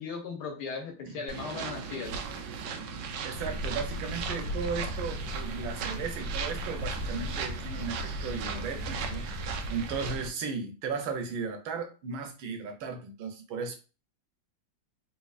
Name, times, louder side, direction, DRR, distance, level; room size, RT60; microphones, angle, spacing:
voice 1, 0.0-2.2, left 5 dB, 65° left, 2 dB, 1.4 m, -37 dB
sound 1, 1.3-10.3, right 6 dB, 75° right, 1.1 m, -38 dB
voice 2, 3.2-9.2 9.7-13.8, right 5 dB, 90° right, 5 dB, 1.6 m, -36 dB
sound 2, 3.3-10.2, equal, 90° left, 1.7 m, -37 dB
4.3 x 2.8 x 2.4 m, 0.33 s
omnidirectional pair, 2.1 m